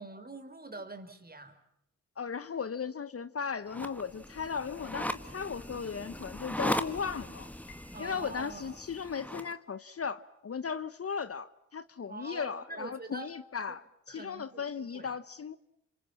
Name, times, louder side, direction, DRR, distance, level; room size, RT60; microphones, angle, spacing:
voice 1, 0.0-1.6 7.9-8.7 12.1-13.3 13.7-13.8 14.1-15.1, right 2 dB, 25° right, 4.9 m, -44 dB
voice 2, 2.2-7.5 8.0-15.6, left 6 dB, 40° left, 1.1 m, -37 dB
sound 1, 3.7-9.5, equal, 5° left, 2.2 m, -38 dB
Piano, 7.7-8.7, left 4 dB, 80° left, 4.9 m, -59 dB
28.5 x 26.0 x 7.5 m
supercardioid pair, 50°, 36 cm